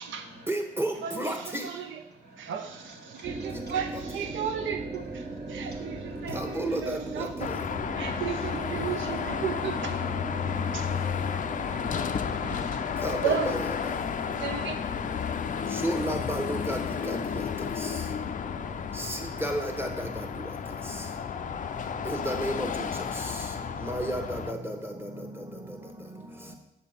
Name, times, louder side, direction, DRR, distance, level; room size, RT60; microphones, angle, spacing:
voice 1, 0.5-1.6 6.3-7.0 13.0-13.4 15.8-16.8 17.1-17.2 19.4-19.9 22.1-22.7 23.9-24.6, right 1 dB, 10° right, 4 dB, 1.1 m, -30 dB
voice 2, 1.0-2.0 2.4-7.5 7.9-10.0 10.7-10.9 11.3-13.9 14.3-14.8, right 7 dB, 75° right, 7 dB, 0.7 m, -35 dB
sound 1, 3.2-15.9, right 2 dB, 30° right, 0.8 m, -40 dB
Car passing by / Traffic noise roadway noise / Engine, 7.4-24.5, left 7 dB, 40° left, 0.4 m, -32 dB
voice 3, 10.5-13.0 15.2-15.8, right 2 dB, 55° right, 0 dB, 1.6 m, -48 dB
6.7 x 3.3 x 5.1 m, 0.89 s
supercardioid pair, 50°, 20 cm